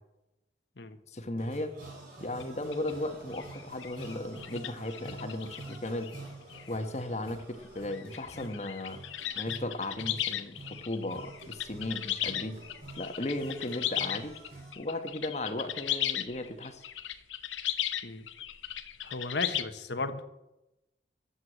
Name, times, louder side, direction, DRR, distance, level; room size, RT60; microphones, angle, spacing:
voice 1, 1.1-1.7 2.2-6.1 6.7-9.0 9.3-10.6 10.8-12.6 13.0-14.4 14.7-16.8, left 1 dB, 35° left, 7 dB, 1.2 m, -36 dB
sound 1, 1.4-14.7, right 2 dB, 50° right, 5.0 m, -48 dB
sound 2, 2.4-2.5 2.7-2.9 3.3-6.2 6.5-6.7 7.3-7.4 7.8-19.6, left 12 dB, 85° left, 0.8 m, -36 dB
voice 2, 19.0-20.2, left 3 dB, 65° left, 10 dB, 1.2 m, -35 dB
11.0 x 8.1 x 7.9 m, 0.92 s
head